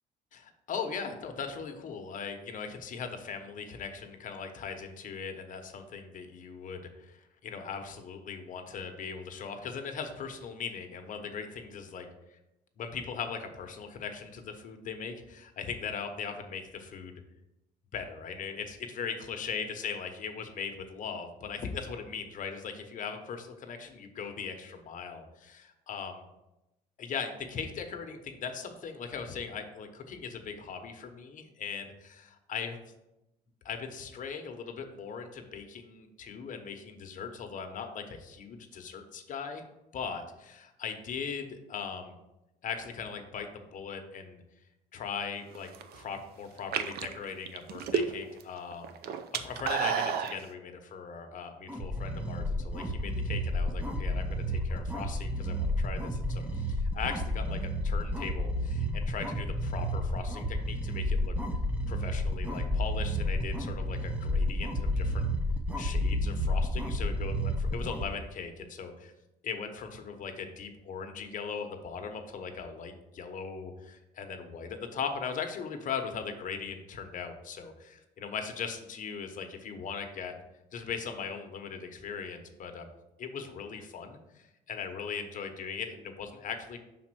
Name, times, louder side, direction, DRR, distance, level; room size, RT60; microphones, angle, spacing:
voice 1, 0.3-12.4 12.8-17.1 17.9-26.2 27.0-32.8 33.6-39.6 39.9-42.1 42.6-44.4 44.9-48.9 49.3-61.3 61.9-65.2 65.8-69.1 69.4-80.3 80.7-82.9 83.2-86.8, left 6 dB, 50° left, 6 dB, 0.9 m, -39 dB
sound 1, 45.5-46.0 46.6-48.4 48.7-50.4, right 7 dB, 70° right, 0.6 m, -31 dB
sound 2, 51.7-68.1, left 1 dB, 10° right, 0.8 m, -31 dB
5.7 x 4.2 x 6.1 m, 0.95 s
cardioid pair, 110°, 17 cm